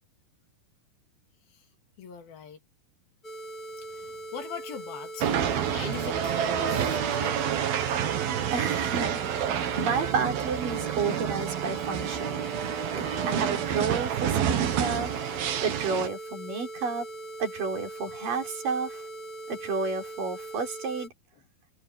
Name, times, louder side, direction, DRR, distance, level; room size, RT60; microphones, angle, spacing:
voice 1, 2.0-2.6 3.9-7.7, left 7 dB, 80° left, 4.6 m, -41 dB
sound 1, 3.2-21.1, right 2 dB, 20° left, 1.3 m, -41 dB
sound 2, 5.2-16.1, right 9 dB, 85° right, 3.7 m, -28 dB
voice 2, 8.5-12.4 12.9-15.1 15.6-17.1 17.4-19.0 19.5-21.1, right 5 dB, 65° right, 5.7 m, -31 dB
omnidirectional pair, 4.2 m